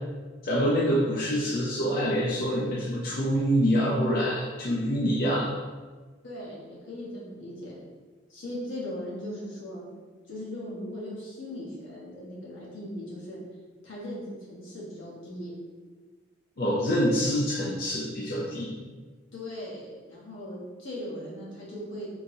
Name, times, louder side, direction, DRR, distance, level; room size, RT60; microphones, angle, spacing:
voice 1, 0.4-5.5 16.6-18.7, equal, 50° left, -6 dB, 0.5 m, -26 dB
voice 2, 6.2-7.8 8.3-9.9 10.3-13.4 13.8-15.5 19.3-22.1, left 1 dB, 80° left, -6 dB, 1.2 m, -38 dB
3.7 x 2.9 x 2.7 m, 1.4 s
head